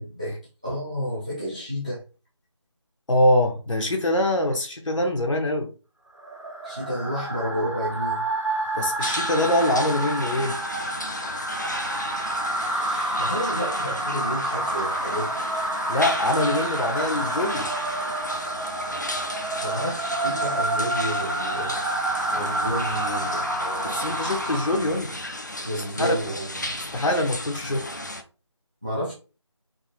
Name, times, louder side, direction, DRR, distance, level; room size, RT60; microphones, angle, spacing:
voice 1, 0.0-2.0 6.6-8.2 12.9-15.4 19.6-24.1 25.6-26.7 28.8-29.1, equal, 15° right, 0.5 m, -31 dB
voice 2, 3.1-5.7 8.7-10.6 15.9-17.7 23.8-25.2 26.0-26.1 26.9-27.9, left 1 dB, 85° left, 0.9 m, -24 dB
sound 1, 6.2-25.1, right 1 dB, 75° right, 1.1 m, -28 dB
sound 2, 9.0-28.2, left 1 dB, 40° left, 0.3 m, -35 dB
3.7 x 2.7 x 2.8 m
figure-of-eight pair, 175°, 16 cm